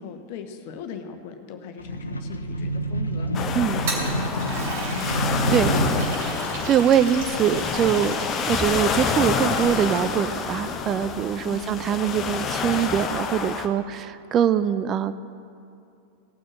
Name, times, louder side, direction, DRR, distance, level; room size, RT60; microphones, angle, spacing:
voice 1, 0.0-3.3 3.7-4.1 4.6-5.0 5.4-6.3 11.4-11.9, left 6 dB, 50° left, 6 dB, 1.2 m, -39 dB
sound 1, 1.8-7.6, right 1 dB, 80° left, 0.8 m, -29 dB
sound 2, 3.3-13.7, left 5 dB, 30° left, 0.9 m, -28 dB
Toilet flush, 3.6-10.1, right 2 dB, 55° right, 3.1 m, -35 dB
voice 2, 6.7-8.2 8.5-15.1, right 9 dB, 30° right, 13 dB, 0.4 m, -23 dB
17.5 x 6.5 x 7.6 m, 2.5 s
figure-of-eight pair, 90°, 0 cm